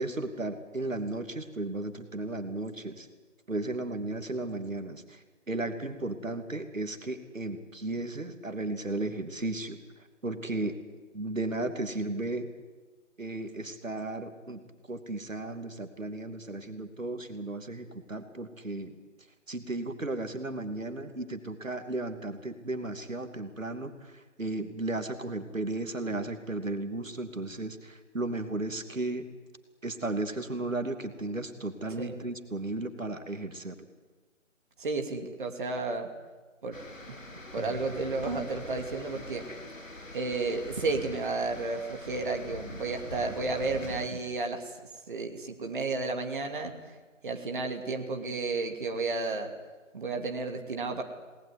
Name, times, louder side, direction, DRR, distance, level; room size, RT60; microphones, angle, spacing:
voice 1, 0.0-3.1 3.5-9.8 10.2-10.7 11.1-12.5 13.2-14.6 14.9-19.0 19.5-29.3 29.8-33.8 37.6-37.8, right 2 dB, 75° right, 7 dB, 2.9 m, -35 dB
voice 2, 34.8-36.1 36.6-36.8 37.0-37.1 37.5-39.5 40.1-44.8 45.1-46.7 47.2-49.5 49.9-51.0, right 3 dB, 40° right, 3 dB, 2.8 m, -32 dB
sound 1, 36.7-44.1, left 2 dB, 75° left, 4.1 m, -43 dB
29.0 x 20.0 x 9.8 m, 1.3 s
figure-of-eight pair, 155°, 39 cm